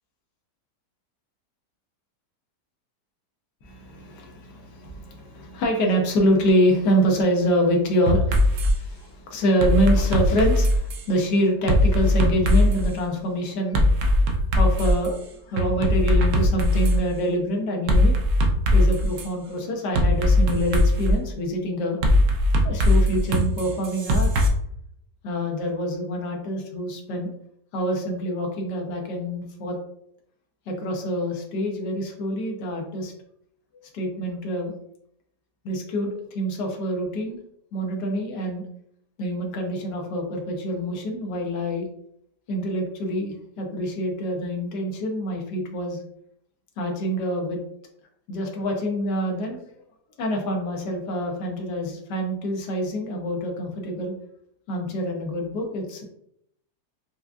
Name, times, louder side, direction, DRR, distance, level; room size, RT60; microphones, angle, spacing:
voice 1, 3.6-14.2 14.5-15.2 15.5-18.1 18.7-22.0 22.6-24.3 25.2-27.3 27.7-29.8 30.7-33.1 33.7-34.8 35.6-37.4 37.7-38.6 39.2-41.9 42.5-46.0 46.8-47.6 48.3-49.6 50.2-54.1 54.7-56.0, equal, 85° left, 1 dB, 1.4 m, -26 dB
sound 1, 8.1-8.7 9.6-11.1 11.7-12.9 13.7-15.1 15.6-17.0 17.9-19.3 20.0-21.1 22.0-24.5, left 1 dB, 65° right, 0.8 m, -19 dB
4.7 x 2.3 x 2.4 m, 0.73 s
omnidirectional pair, 1.8 m